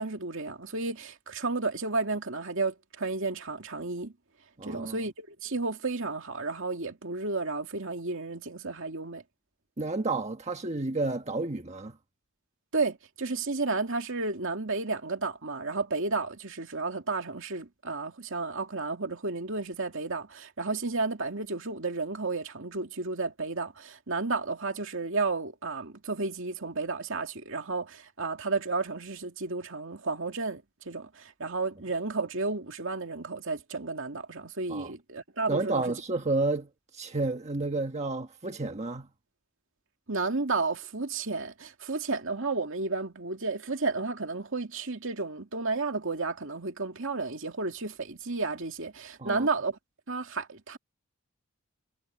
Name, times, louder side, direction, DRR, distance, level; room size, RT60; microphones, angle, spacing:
voice 1, 0.0-4.1 4.6-9.2 12.7-36.0 40.1-49.8 50.1-50.8, right 3 dB, 65° right, 2.5 m, -32 dB
voice 2, 4.6-5.0 9.8-12.0 34.7-34.9 35.5-39.1 49.2-49.5, right 2 dB, 30° right, 1.4 m, -31 dB
head